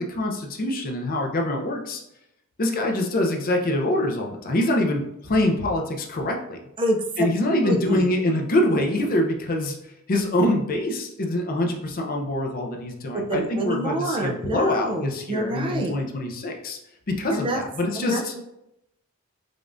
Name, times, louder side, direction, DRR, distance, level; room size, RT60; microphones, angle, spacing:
voice 1, 0.0-2.0 2.6-6.6 7.2-9.8 10.1-16.8 17.1-18.3, left 1 dB, 45° left, 2 dB, 0.5 m, -24 dB
voice 2, 6.8-7.2 7.6-8.1 13.1-15.9 17.3-17.6 17.9-18.4, right 1 dB, 25° right, 2 dB, 0.4 m, -27 dB
5.0 x 2.4 x 2.5 m, 0.84 s
head